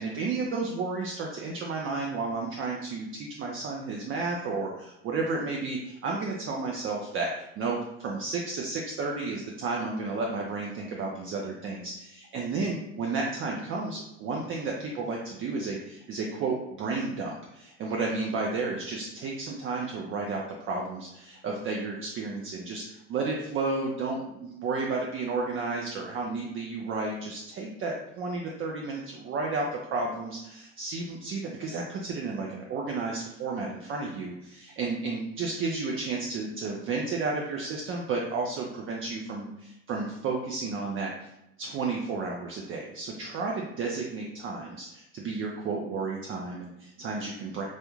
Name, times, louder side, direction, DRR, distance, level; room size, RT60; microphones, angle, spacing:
voice 1, 0.0-41.3 41.6-47.7, right 3 dB, 40° right, -1 dB, 0.4 m, -32 dB
2.4 x 2.1 x 3.0 m, 0.87 s
supercardioid pair, 95°, 32 cm